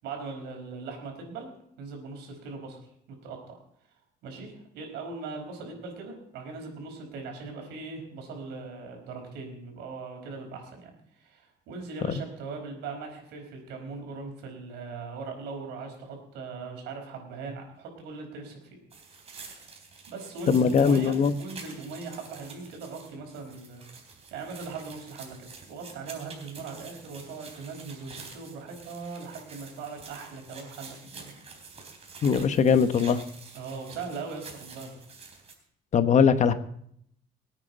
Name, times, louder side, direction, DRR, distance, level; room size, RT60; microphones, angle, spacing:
voice 1, 0.0-1.5 1.8-3.6 4.2-18.6 20.1-23.8 24.3-31.3 33.5-34.9, right 4 dB, 85° right, 2 dB, 4.7 m, -40 dB
sound 1, 18.9-35.5, right 4 dB, 40° right, 3.8 m, -48 dB
voice 2, 20.5-21.3 32.2-33.2 35.9-36.5, left 6 dB, 45° left, 10 dB, 1.2 m, -21 dB
24.0 x 9.1 x 4.1 m, 0.69 s
cardioid pair, 110°, 17 cm